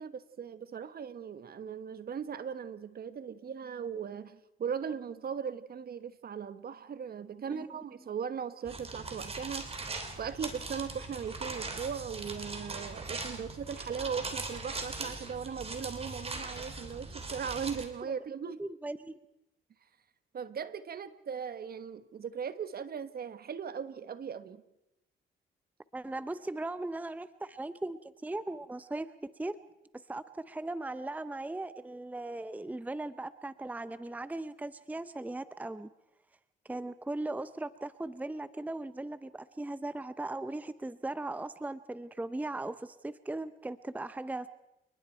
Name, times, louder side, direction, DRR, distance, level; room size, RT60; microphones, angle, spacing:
voice 1, 0.0-9.7 10.2-18.6 20.3-24.6, right 7 dB, 50° right, 13 dB, 1.3 m, -38 dB
sound 1, 8.6-17.8, right 3 dB, 30° right, 3.1 m, -40 dB
voice 2, 18.5-19.2 25.9-29.6 29.9-35.9 36.7-44.5, right 2 dB, 10° right, 14 dB, 0.7 m, -38 dB
29.5 x 20.5 x 4.5 m, 0.90 s
cardioid pair, 90°, 20 cm